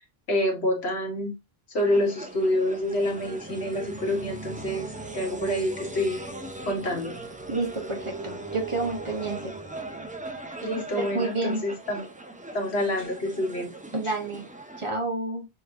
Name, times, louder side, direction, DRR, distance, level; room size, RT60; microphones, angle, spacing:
voice 1, 0.3-1.3 1.7-4.9 5.1-6.2 6.6-7.2 10.6-12.0 12.5-13.7, left 1 dB, 90° left, 1.6 m, -27 dB
sound 1, 1.8-14.9, right 2 dB, 10° right, 0.4 m, -39 dB
voice 2, 7.5-9.5 11.0-11.6 13.9-14.5 14.8-15.5, right 3 dB, 30° right, 1.0 m, -29 dB
6.3 x 3.0 x 2.5 m
omnidirectional pair, 1.1 m